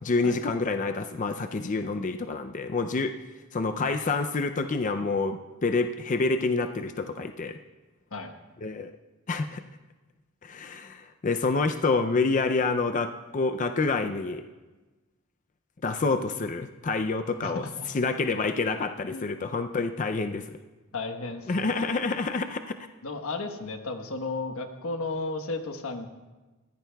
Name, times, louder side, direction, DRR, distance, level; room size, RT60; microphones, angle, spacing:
voice 1, 0.0-3.1 3.5-7.6 8.6-8.9 9.3-9.6 10.4-14.4 15.8-17.7 17.9-20.6 21.5-22.6, left 3 dB, 35° left, 7 dB, 0.4 m, -27 dB
voice 2, 17.4-17.9 19.1-19.3 20.9-21.8 23.0-26.1, left 3 dB, 85° left, 5 dB, 1.2 m, -34 dB
22.0 x 15.5 x 2.3 m, 1.2 s
head